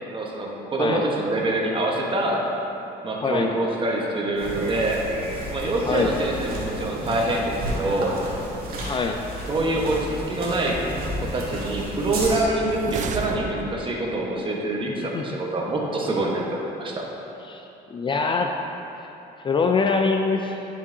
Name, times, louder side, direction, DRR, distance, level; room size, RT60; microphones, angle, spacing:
voice 1, 0.1-2.4 3.0-5.0 5.5-8.2 9.5-10.8 11.2-17.0, right 2 dB, 30° right, -2 dB, 1.2 m, -25 dB
sound 1, 4.4-12.4, equal, 60° right, 1.6 m, -32 dB
sound 2, 12.4-14.1, right 6 dB, 45° right, 0.5 m, -33 dB
voice 2, 17.9-18.5 19.4-20.6, left 4 dB, 30° left, 3 dB, 0.4 m, -23 dB
10.5 x 5.6 x 2.7 m, 3.0 s
cardioid pair, 110°, 17 cm